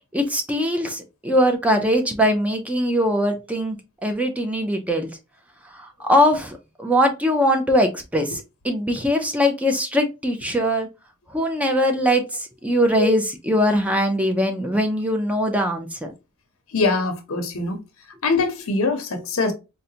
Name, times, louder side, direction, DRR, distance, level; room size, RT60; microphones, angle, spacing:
voice 1, 0.1-3.8 4.0-5.1 5.7-10.9 11.3-16.1, equal, 5° right, 0.5 m, -21 dB
voice 2, 16.7-17.8 18.2-19.5, left 3 dB, 85° left, 0.7 m, -23 dB
3.8 x 2.1 x 2.7 m
head